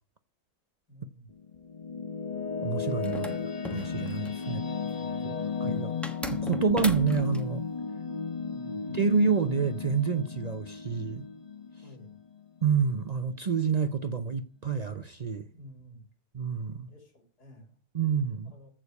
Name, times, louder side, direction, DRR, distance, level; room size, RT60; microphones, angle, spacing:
voice 1, 0.9-1.3 4.4-5.6 8.5-8.9 11.8-12.2 15.5-16.1 16.8-17.8 18.5-18.7, equal, 85° left, 3.9 m, -51 dB
sound 1, 1.3-12.6, left 5 dB, 30° left, 0.8 m, -34 dB
voice 2, 2.6-3.4 3.7-4.6 5.2-5.3 5.6-5.9 6.3-7.6 8.9-11.2 12.6-15.5 16.3-16.9 17.9-18.5, right 5 dB, 50° right, 0.4 m, -28 dB
sound 2, 3.0-4.5 6.0-7.4, equal, ahead, 0.8 m, -37 dB
15.0 x 5.0 x 8.1 m
omnidirectional pair, 1.6 m